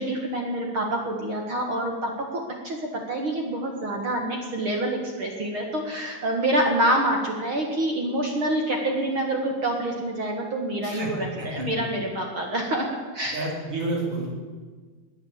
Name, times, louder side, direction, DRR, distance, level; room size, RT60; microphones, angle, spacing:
voice 1, 0.0-13.5, right 1 dB, 55° right, 1 dB, 1.4 m, -27 dB
voice 2, 13.3-14.3, right 2 dB, 35° right, -2 dB, 4.3 m, -30 dB
21.0 x 8.1 x 8.1 m, 1.5 s
omnidirectional pair, 4.8 m